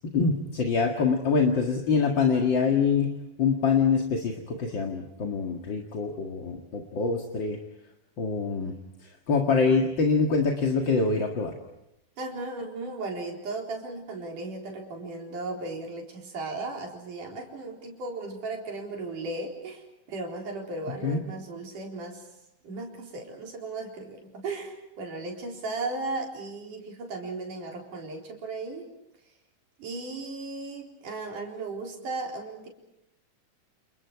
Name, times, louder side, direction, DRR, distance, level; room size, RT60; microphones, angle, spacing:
voice 1, 0.1-7.6 8.2-8.7 9.0-11.6 21.0-21.2, left 5 dB, 40° left, 3 dB, 2.3 m, -25 dB
voice 2, 12.2-22.3 22.6-28.9 29.8-32.7, right 3 dB, 80° right, 1 dB, 5.6 m, -36 dB
30.0 x 29.5 x 4.8 m, 0.87 s
omnidirectional pair, 3.6 m